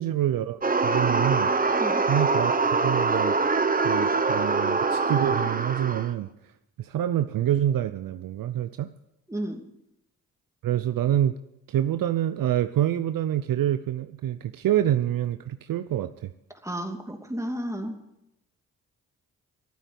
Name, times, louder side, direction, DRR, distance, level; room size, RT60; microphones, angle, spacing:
voice 1, 0.0-1.5 2.1-3.3 3.8-6.3 6.8-8.9 10.6-11.4 11.7-16.3, right 11 dB, 65° right, 11 dB, 0.7 m, -26 dB
sound 1, 0.6-6.1, right 4 dB, 25° right, 1.1 m, -24 dB
voice 2, 9.3-9.6 16.6-18.0, right 1 dB, 10° right, 3 dB, 2.9 m, -32 dB
13.0 x 8.9 x 8.4 m, 0.85 s
hypercardioid pair, 45°, 37 cm